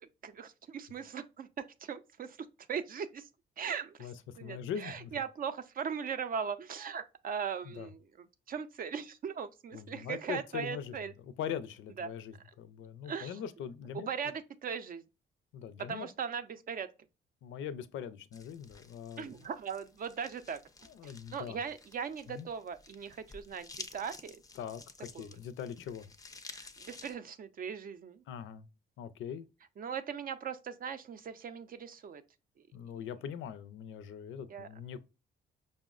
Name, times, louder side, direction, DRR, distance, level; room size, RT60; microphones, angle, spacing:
voice 1, 0.0-3.3 3.6-11.1 12.0-12.1 13.0-13.4 13.9-15.0 15.9-16.9 19.2-20.6 21.0-24.4 25.1-25.4 26.5-28.2 29.8-32.2 34.5-34.7, right 7 dB, 45° right, 0.5 m, -39 dB
voice 2, 4.0-5.2 7.7-7.9 9.7-11.0 11.2-14.1 15.5-16.1 17.4-19.3 20.9-21.6 22.3-22.5 24.6-26.1 28.3-28.6 29.0-29.4 32.7-35.0, left 8 dB, 75° left, 0.4 m, -41 dB
sound 1, 18.3-27.1, left 3 dB, 20° left, 0.4 m, -52 dB
5.3 x 2.0 x 2.4 m
cardioid pair, 90°, 20 cm